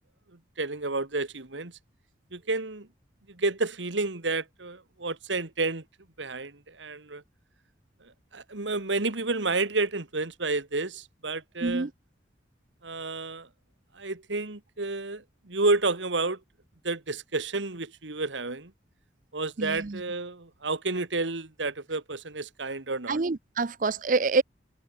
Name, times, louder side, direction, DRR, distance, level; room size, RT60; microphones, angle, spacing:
voice 1, 0.6-1.7 2.3-2.9 3.3-5.8 6.2-7.2 8.3-11.9 12.8-13.5 14.0-16.4 16.8-18.7 19.3-23.2, right 3 dB, 85° right, 2.0 m, -30 dB
voice 2, 11.6-11.9 19.6-20.0 23.1-24.4, right 3 dB, 45° right, 0.6 m, -26 dB
head